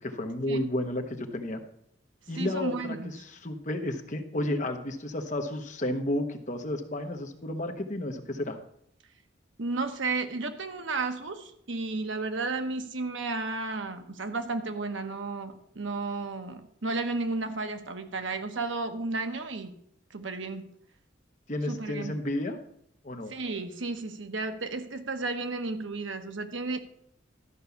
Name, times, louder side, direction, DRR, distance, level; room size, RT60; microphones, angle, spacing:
voice 1, 0.0-1.6 2.3-8.6 21.5-22.6 23.0-23.3, left 1 dB, 40° left, 5 dB, 1.1 m, -32 dB
voice 2, 2.4-3.1 9.6-19.7 20.1-20.7 21.7-22.2 23.3-26.8, right 3 dB, 75° right, 8 dB, 1.0 m, -33 dB
12.5 x 5.5 x 7.0 m, 0.69 s
head